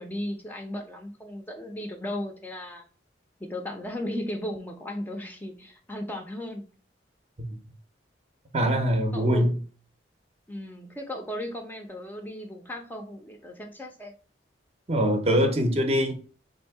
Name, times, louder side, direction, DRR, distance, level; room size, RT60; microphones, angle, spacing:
voice 1, 0.0-2.8 3.5-6.6 9.1-9.5 10.5-14.1, left 1 dB, 10° left, 0.5 m, -36 dB
voice 2, 8.5-9.5 14.9-16.1, equal, 35° right, 0.6 m, -23 dB
3.5 x 2.6 x 4.6 m
head